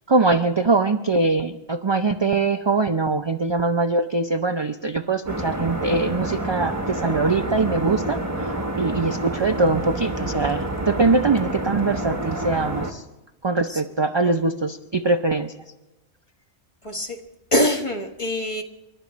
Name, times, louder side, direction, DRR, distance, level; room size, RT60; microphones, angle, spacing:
voice 1, 0.1-13.0 13.4-15.5, right 3 dB, 40° right, 0.4 m, -22 dB
sound 1, 5.3-12.9, right 1 dB, 15° right, 1.2 m, -28 dB
voice 2, 16.8-17.2 17.5-18.6, left 1 dB, 25° left, 1.4 m, -24 dB
29.5 x 12.0 x 3.1 m
omnidirectional pair, 1.2 m